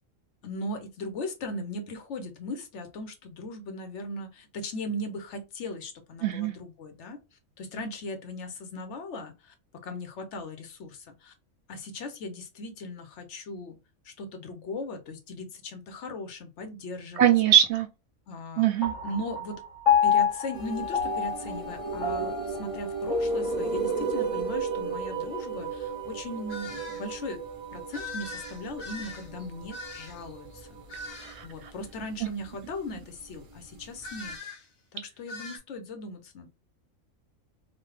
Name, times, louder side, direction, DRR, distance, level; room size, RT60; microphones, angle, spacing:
voice 1, 0.4-9.5 9.8-11.3 11.7-13.8 14.0-17.3 18.3-18.7 19.0-19.6 20.0-27.4 27.7-30.8 31.4-34.4 34.9-36.5, left 1 dB, 65° left, 0.9 m, -38 dB
voice 2, 6.2-6.5 17.2-17.9 18.6-18.9 31.2-31.5, right 10 dB, 65° right, 0.8 m, -22 dB
Piano, 18.8-25.5, left 6 dB, 20° left, 1.7 m, -29 dB
sound 1, 20.5-34.3, right 6 dB, 50° right, 0.4 m, -36 dB
sound 2, 26.5-27.0 27.9-30.3 30.9-31.4 34.0-34.7 35.3-35.6, left 3 dB, 45° left, 0.6 m, -41 dB
3.1 x 2.1 x 3.1 m
omnidirectional pair, 1.3 m